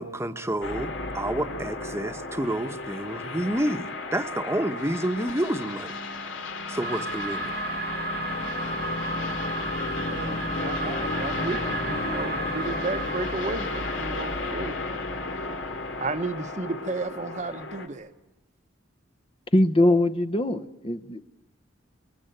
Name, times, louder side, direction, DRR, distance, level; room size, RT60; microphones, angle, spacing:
voice 1, 0.0-5.9 6.7-7.5, right 1 dB, 15° right, 1.1 m, -29 dB
sound 1, 0.6-17.9, left 3 dB, 80° left, 2.7 m, -33 dB
sound 2, 6.8-14.5, right 3 dB, 60° right, 1.5 m, -34 dB
voice 2, 10.1-14.8 16.0-18.1, right 3 dB, 40° right, 1.0 m, -33 dB
voice 3, 19.5-21.2, left 1 dB, 30° left, 0.8 m, -22 dB
26.5 x 23.0 x 9.1 m
head